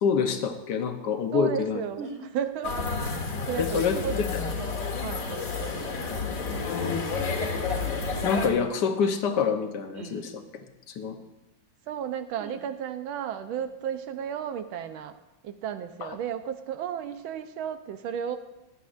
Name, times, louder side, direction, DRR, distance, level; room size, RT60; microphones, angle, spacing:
voice 1, 0.0-1.8 3.6-4.0 6.5-7.1 8.2-10.4 10.9-11.2 16.0-16.1, left 6 dB, 65° left, 7 dB, 1.4 m, -26 dB
voice 2, 1.3-4.2 4.5-5.8 11.9-15.2 15.4-18.4, right 9 dB, 85° right, 10 dB, 1.5 m, -34 dB
sound 1, 2.0-2.3 3.9-4.3 5.8-6.0 7.8-8.0 9.9-10.3 12.4-12.6, right 3 dB, 35° right, 1.7 m, -41 dB
sound 2, 2.6-8.5, left 4 dB, 45° left, 1.7 m, -30 dB
16.5 x 10.5 x 2.5 m, 0.97 s
omnidirectional pair, 2.2 m